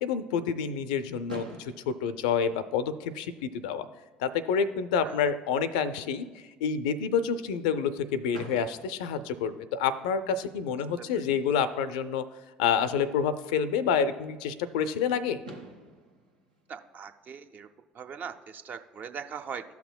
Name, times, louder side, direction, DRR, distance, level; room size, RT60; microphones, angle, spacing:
voice 1, 0.0-3.9 4.2-12.2 12.6-15.4, left 7 dB, 70° left, 13 dB, 0.4 m, -28 dB
Fireworks, 1.3-3.3 4.1-4.2 4.4-4.6 4.9-5.0 8.3-10.2 11.9-12.0 15.0-15.1 15.4-17.7, right 2 dB, 90° right, 0.7 m, -48 dB
voice 2, 16.7-17.7 17.9-19.6, right 7 dB, 45° right, 8 dB, 0.5 m, -41 dB
13.0 x 5.8 x 2.2 m, 1.3 s
figure-of-eight pair, 55°, 4 cm